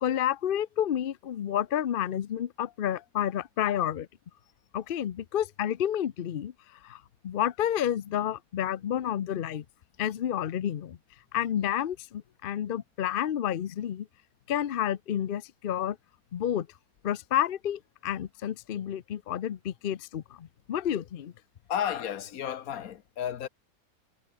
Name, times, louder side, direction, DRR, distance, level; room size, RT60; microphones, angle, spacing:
voice 1, 0.0-4.1 4.7-6.5 6.8-9.6 10.0-11.0 11.3-14.1 14.5-16.0 16.3-16.7 17.0-21.3, left 10 dB, 55° left, 0.6 m, -30 dB
voice 2, 21.7-23.5, left 9 dB, 70° left, 1.4 m, -32 dB
omnidirectional pair, 1.6 m